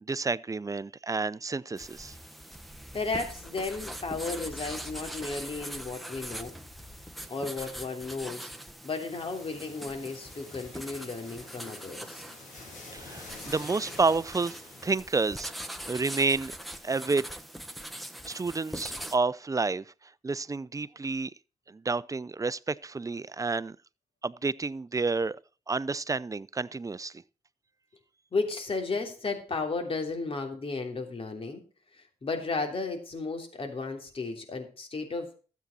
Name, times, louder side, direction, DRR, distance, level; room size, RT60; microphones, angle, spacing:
voice 1, 0.1-2.2 12.9-15.5 15.9-16.5 16.8-17.3 18.3-19.8 20.2-21.3 21.7-23.8 24.2-25.4 25.7-27.2, right 3 dB, 25° right, 0.5 m, -30 dB
sound 1, 1.8-19.2, right 1 dB, ahead, 1.3 m, -42 dB
voice 2, 2.9-6.5 7.3-8.5 8.8-12.2 28.3-31.6 31.9-35.3, left 3 dB, 45° left, 3.1 m, -34 dB
sound 2, 9.1-15.0, left 3 dB, 85° left, 4.8 m, -49 dB
13.0 x 8.2 x 4.2 m
cardioid pair, 65°, 13 cm